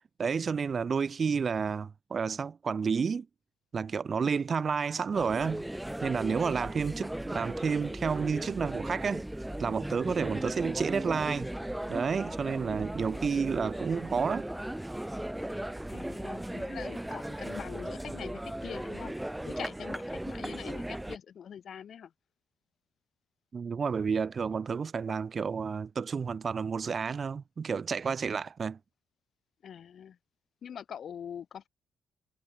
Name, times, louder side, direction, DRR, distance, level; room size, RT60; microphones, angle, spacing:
voice 1, 0.2-3.3 3.7-5.7 6.0-9.2 9.6-11.5 11.9-14.5 23.5-28.8, right 5 dB, 40° right, 1.5 m, -30 dB
sound 1, 5.1-21.2, right 1 dB, 5° right, 1.5 m, -37 dB
voice 2, 15.9-19.1 19.4-22.1 29.6-30.2 30.6-31.7, left 8 dB, 60° left, 6.7 m, -43 dB
cardioid pair, 90°, 0 cm